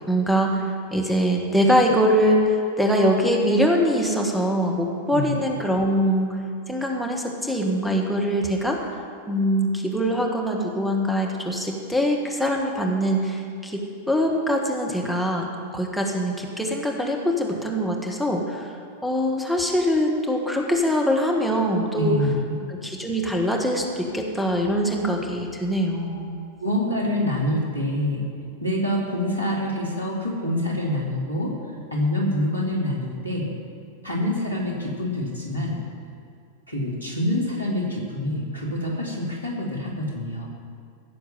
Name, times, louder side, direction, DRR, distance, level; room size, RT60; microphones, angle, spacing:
voice 1, 0.1-6.4 6.7-8.8 9.3-15.5 15.7-18.7 19.0-22.2 22.7-26.4, equal, ahead, 0 dB, 1.8 m, -23 dB
voice 2, 21.9-22.6 26.6-28.2 28.6-31.6 31.9-33.5 34.0-35.8 36.7-40.5, left 1 dB, 85° left, -2 dB, 2.9 m, -26 dB
16.0 x 7.0 x 7.5 m, 2.4 s
figure-of-eight pair, 90°, 0 cm